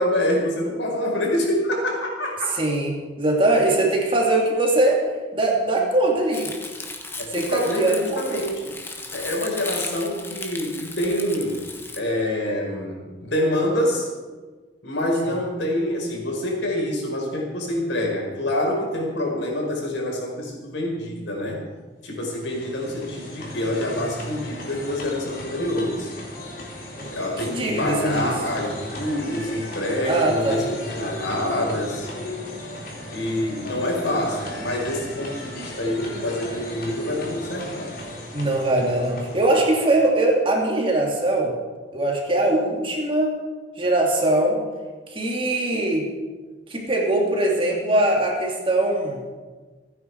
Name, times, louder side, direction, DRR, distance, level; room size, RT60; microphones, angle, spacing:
voice 1, 0.0-2.5 7.2-8.8 9.1-11.7 11.9-14.1 14.8-21.6 22.0-26.1 27.1-32.1 33.1-37.9, left 1 dB, 85° left, -1 dB, 4.9 m, -26 dB
voice 2, 2.5-5.0 5.3-6.5 7.3-8.4 27.0-27.1 27.5-28.3 30.1-30.6 38.3-41.5 41.9-43.3 43.8-44.6 45.1-46.1 46.7-49.2, right 2 dB, 30° right, -1 dB, 2.8 m, -21 dB
Crumpling crinkling, 6.3-12.0, left 3 dB, 15° left, 1.3 m, -36 dB
sound 1, 22.1-40.1, left 1 dB, 50° left, 3.7 m, -36 dB
27.0 x 9.7 x 4.7 m, 1.4 s
head